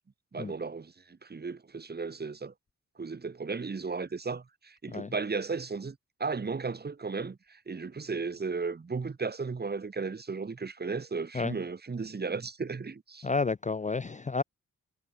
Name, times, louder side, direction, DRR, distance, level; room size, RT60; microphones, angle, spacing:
voice 1, 0.3-2.5 3.0-13.3, right 4 dB, 30° right, 1.4 m, -35 dB
voice 2, 13.2-14.4, left 4 dB, 20° left, 0.6 m, -31 dB
cardioid pair, 85°, 33 cm